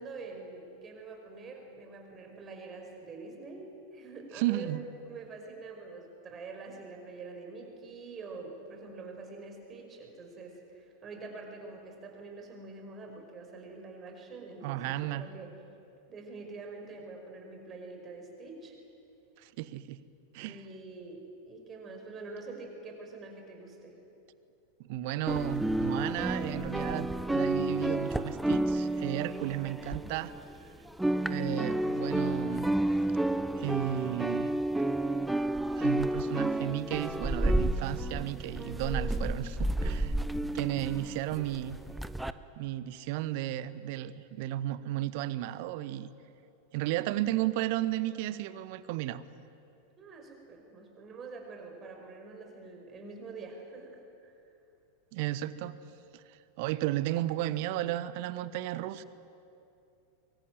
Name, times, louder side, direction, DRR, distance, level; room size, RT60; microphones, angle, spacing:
voice 1, 0.0-15.5 16.1-18.8 20.4-24.0 50.0-54.3, right 3 dB, 25° right, 2 dB, 5.4 m, -45 dB
voice 2, 4.3-4.8 14.6-15.2 19.4-20.0 20.3-20.6 24.9-30.3 31.2-32.7 33.6-34.5 35.8-40.2 40.5-41.8 42.6-46.1 46.7-49.2 55.1-55.7 56.1-59.0, right 14 dB, 50° right, 16 dB, 1.1 m, -33 dB
sound 1, 25.3-30.6 30.9-42.3, right 1 dB, 5° right, 0.8 m, -31 dB
24.0 x 23.5 x 9.3 m, 2.7 s
figure-of-eight pair, 90°, 0 cm